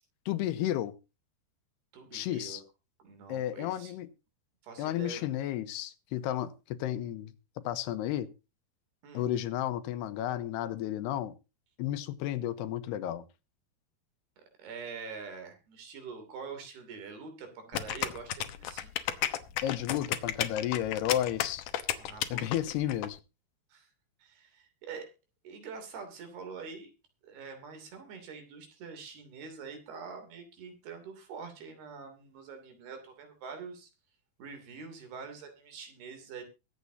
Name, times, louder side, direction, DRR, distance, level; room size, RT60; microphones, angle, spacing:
voice 1, 0.3-0.9 2.1-2.6 3.3-4.1 4.8-7.3 7.6-8.3 9.1-11.3 11.8-13.2 19.6-21.6 22.3-23.2, left 12 dB, 90° left, 12 dB, 3.1 m, -32 dB
voice 2, 1.9-2.6 3.0-4.0 4.6-5.3 9.0-9.3 14.4-18.9 22.0-22.6 23.7-23.9 24.2-25.1 25.4-26.9 27.2-33.9 34.4-36.4, right 5 dB, 75° right, 6 dB, 4.9 m, -45 dB
sound 1, 17.7-23.1, left 11 dB, 70° left, 2.2 m, -33 dB
22.5 x 8.3 x 2.8 m, 0.29 s
omnidirectional pair, 4.6 m